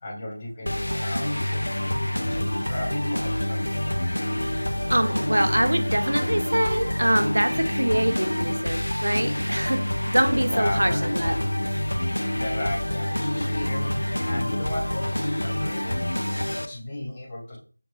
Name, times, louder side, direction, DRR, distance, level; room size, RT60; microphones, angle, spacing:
voice 1, 0.0-3.9 10.5-11.1 12.3-16.1 16.6-17.6, left 1 dB, 15° left, -2 dB, 0.5 m, -35 dB
sound 1, 0.7-16.7, left 1 dB, 80° left, 0.5 m, -27 dB
voice 2, 4.9-9.8 10.1-11.3, right 1 dB, 80° right, 8 dB, 0.6 m, -24 dB
5.1 x 2.8 x 3.0 m, 0.40 s
figure-of-eight pair, 175°, 0 cm